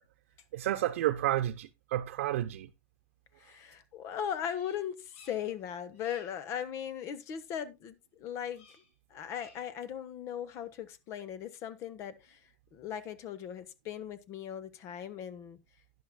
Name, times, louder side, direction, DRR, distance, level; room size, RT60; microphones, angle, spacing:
voice 1, 0.5-2.7, right 13 dB, 80° right, 0.7 m, -31 dB
voice 2, 3.4-8.7 9.1-12.4 12.7-15.6, left 9 dB, 45° left, 1.1 m, -38 dB
Bird vocalization bird call bird song, 4.5-5.6 5.9-6.4 8.5-8.9 9.2-9.8, left 4 dB, 70° left, 5.5 m, -59 dB
11.5 x 10.5 x 2.2 m
supercardioid pair, 130°, 7 cm